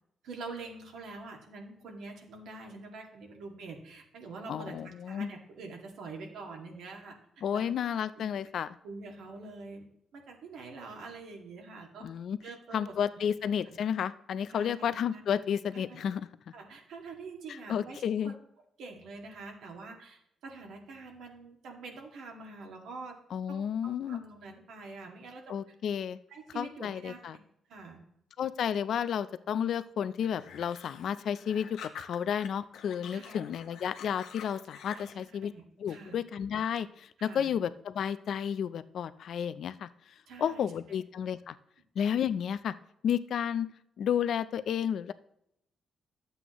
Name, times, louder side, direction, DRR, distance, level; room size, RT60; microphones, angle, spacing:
voice 1, 0.2-4.7 5.1-7.2 7.5-7.6 7.9-8.4 8.8-9.9 10.1-12.1 12.4-13.3 13.7-13.8 14.5-14.9 16.5-18.4 18.8-23.2 23.5-23.6 24.1-25.6 26.3-27.4 27.7-28.0 33.1-33.4 34.9-35.1 35.4-36.2 37.2-37.5 40.3-40.7, right 3 dB, 80° right, 1 dB, 2.0 m, -45 dB
voice 2, 4.5-5.3 7.4-8.7 12.0-12.4 12.7-16.3 17.5-18.3 23.3-24.2 25.5-26.2 26.5-27.4 28.4-35.5 35.8-41.5 42.0-42.7 43.0-43.7 44.0-45.1, left 8 dB, 60° left, 14 dB, 0.4 m, -32 dB
sound 1, 30.2-32.5 32.7-35.2, left 8 dB, 85° left, 0.8 m, -47 dB
12.0 x 7.8 x 3.0 m, 0.77 s
cardioid pair, 140°, 0 cm